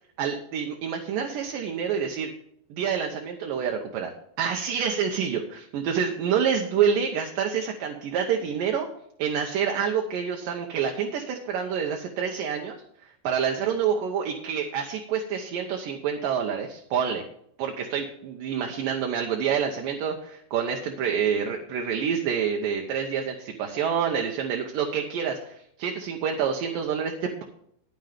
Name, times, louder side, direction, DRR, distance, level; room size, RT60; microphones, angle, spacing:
voice 1, 0.2-2.3 2.7-8.9 9.2-12.8 13.2-17.2 17.6-27.4, right 7 dB, 75° right, 2 dB, 2.4 m, -27 dB
10.5 x 9.4 x 3.4 m, 0.71 s
omnidirectional pair, 4.3 m